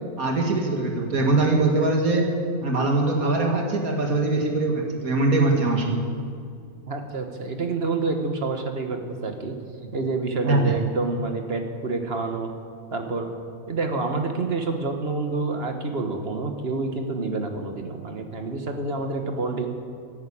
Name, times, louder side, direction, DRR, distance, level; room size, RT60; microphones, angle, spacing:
voice 1, 0.2-2.3 2.6-6.1 10.4-10.7, right 2 dB, 70° right, 1 dB, 2.4 m, -22 dB
voice 2, 6.9-9.5 9.9-12.5 12.9-13.3 13.7-19.7, right 3 dB, 45° right, 5 dB, 1.6 m, -28 dB
12.0 x 11.0 x 8.6 m, 2.4 s
omnidirectional pair, 1.5 m